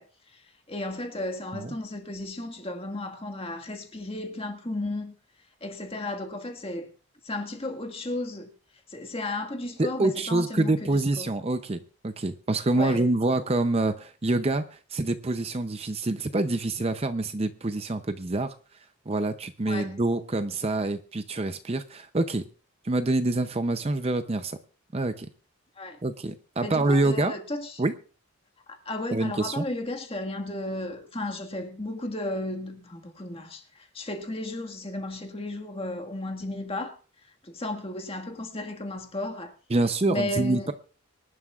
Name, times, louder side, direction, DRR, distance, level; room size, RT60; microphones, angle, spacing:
voice 1, 0.0-5.1 5.6-6.9 7.2-8.5 8.9-11.4 12.7-13.1 19.7-20.0 25.7-26.0 26.6-27.8 28.7-37.0 37.4-39.6 40.1-40.7, left 1 dB, 25° left, 1.6 m, -34 dB
voice 2, 9.8-18.5 19.1-22.4 22.8-24.6 24.9-25.3 26.0-27.3 27.8-27.9 29.1-29.6 39.7-40.7, right 2 dB, 25° right, 0.5 m, -26 dB
25.0 x 11.0 x 2.4 m
head